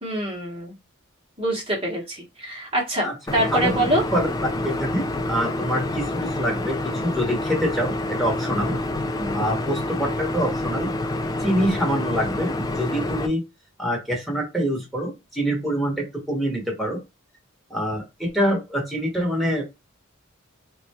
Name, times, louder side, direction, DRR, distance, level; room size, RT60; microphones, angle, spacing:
voice 1, 0.0-0.8 1.4-3.1 3.3-4.0 9.2-9.5, right 1 dB, 25° right, -3 dB, 1.0 m, -25 dB
sound 1, 3.3-13.3, left 1 dB, 20° left, 0.4 m, -27 dB
voice 2, 3.5-4.3 4.5-8.8 9.3-10.9 11.4-13.4 13.8-17.0 17.7-19.7, equal, ahead, -2 dB, 1.1 m, -25 dB
4.0 x 2.2 x 2.8 m, 0.23 s
head